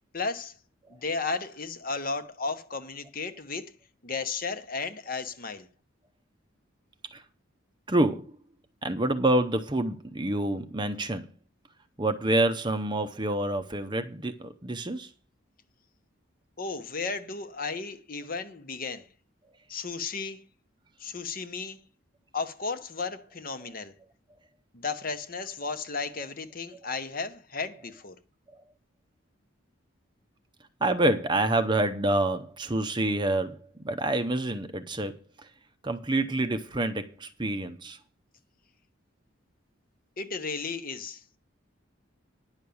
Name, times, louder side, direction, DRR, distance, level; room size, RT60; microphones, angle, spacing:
voice 1, 0.1-0.6 0.9-3.7 4.0-5.7 16.6-19.1 19.7-20.4 21.0-21.8 22.3-23.9 24.7-28.2 40.2-41.4, left 4 dB, 45° left, 1.0 m, -34 dB
voice 2, 7.9-8.3 8.8-11.3 12.0-15.1 30.8-33.6 33.8-35.1 35.8-38.0, right 1 dB, 20° right, 0.7 m, -27 dB
10.5 x 6.3 x 7.0 m
head